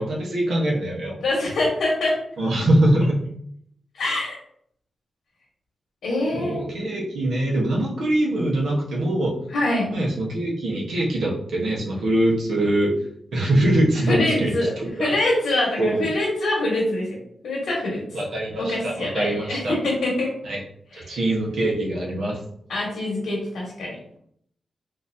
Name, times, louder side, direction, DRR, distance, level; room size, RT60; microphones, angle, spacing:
voice 1, 0.0-1.2 2.4-3.2 6.3-9.3 9.9-13.0 13.3-15.1 15.8-16.1 18.1-19.7 20.4-20.6 20.9-22.4, right 1 dB, 80° right, -2 dB, 1.0 m, -23 dB
voice 2, 1.2-2.2 3.9-4.4 6.0-6.6 9.5-9.9 14.1-14.7 15.0-17.2 17.4-18.0 18.6-20.3 21.1-21.2 22.7-24.0, left 1 dB, 90° left, -4 dB, 1.1 m, -24 dB
3.9 x 2.7 x 2.6 m, 0.68 s
wide cardioid pair, 110°, 0 cm